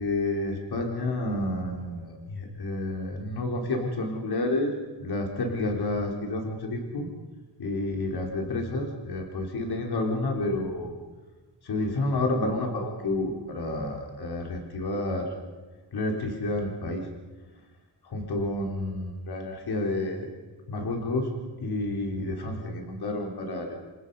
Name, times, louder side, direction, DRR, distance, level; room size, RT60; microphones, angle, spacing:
voice 1, 0.0-4.7 5.0-7.1 7.6-11.0 11.6-15.3 15.9-17.1 18.0-20.3 20.7-21.3 21.6-23.8, left 2 dB, 65° left, 2 dB, 4.0 m, -30 dB
29.0 x 25.0 x 5.6 m, 1.3 s
wide cardioid pair, 130°, 42 cm